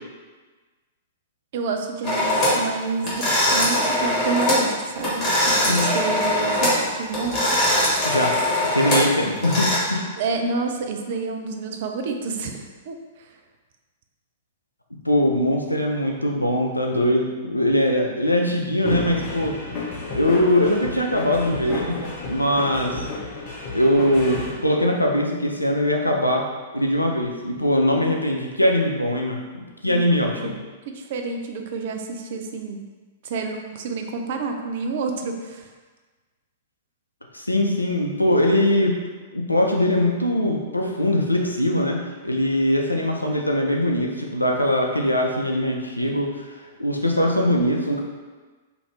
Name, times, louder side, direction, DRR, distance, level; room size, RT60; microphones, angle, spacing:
voice 1, 1.5-7.6 10.2-13.3 29.8-30.0 30.4-30.5 30.9-32.9 33.2-35.7, right 4 dB, 50° right, 4 dB, 0.3 m, -29 dB
sound 1, 2.0-2.6 3.0-4.7 4.9-6.8 7.1-9.8, left 1 dB, 25° left, 1.2 m, -21 dB
voice 2, 5.6-6.0 8.0-8.4 8.7-10.1 15.0-19.6 20.1-22.0 22.3-23.1 23.7-26.4 26.7-30.5 37.3-39.0 39.3-46.5 46.8-48.0, left 1 dB, 90° left, 1 dB, 0.4 m, -21 dB
sound 2, 18.8-24.5, left 3 dB, 40° left, 0.7 m, -31 dB
2.6 x 2.5 x 3.2 m, 1.3 s
figure-of-eight pair, 105°, 0 cm